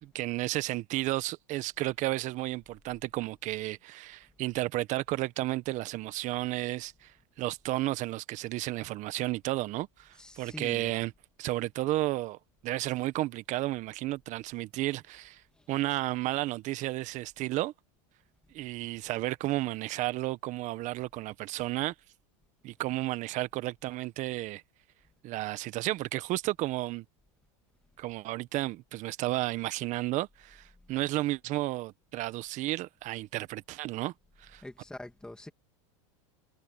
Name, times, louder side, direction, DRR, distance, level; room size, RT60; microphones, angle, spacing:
voice 1, 0.0-7.1 7.4-11.1 11.4-12.4 12.6-15.4 15.7-17.7 18.5-21.9 22.6-24.6 25.2-27.0 28.0-34.1 34.4-34.6, right 17 dB, 45° right, 1.4 m, -32 dB
voice 2, 10.2-11.0 15.5-15.7 34.6-35.5, left 1 dB, 5° left, 2.6 m, -45 dB
hypercardioid pair, 110°, 17 cm